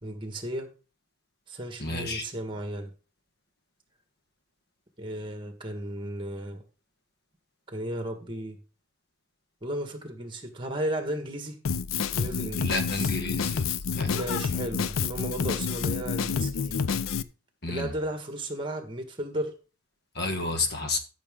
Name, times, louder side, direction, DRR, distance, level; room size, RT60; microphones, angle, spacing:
voice 1, 0.0-0.7 1.5-2.9 5.0-6.6 7.7-8.6 9.6-11.6 12.1-13.1 14.0-16.8 17.7-19.6, right 1 dB, 25° right, 1.7 m, -34 dB
voice 2, 1.8-2.2 12.6-14.1 17.6-17.9 20.1-21.0, left 3 dB, 50° left, 1.4 m, -31 dB
Drum kit, 11.6-17.2, left 6 dB, 90° left, 0.5 m, -29 dB
13.5 x 6.3 x 3.7 m
head